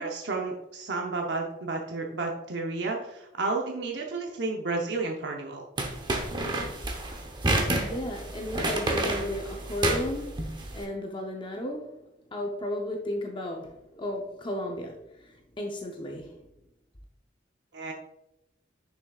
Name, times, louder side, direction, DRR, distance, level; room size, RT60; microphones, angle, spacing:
voice 1, 0.0-5.6 17.7-17.9, right 3 dB, 60° right, 0 dB, 0.7 m, -31 dB
sound 1, 5.8-10.8, right 2 dB, 25° right, 0.8 m, -29 dB
voice 2, 7.8-11.9 12.3-16.3, left 1 dB, 25° left, 1 dB, 0.6 m, -34 dB
6.7 x 6.1 x 2.3 m, 0.88 s
head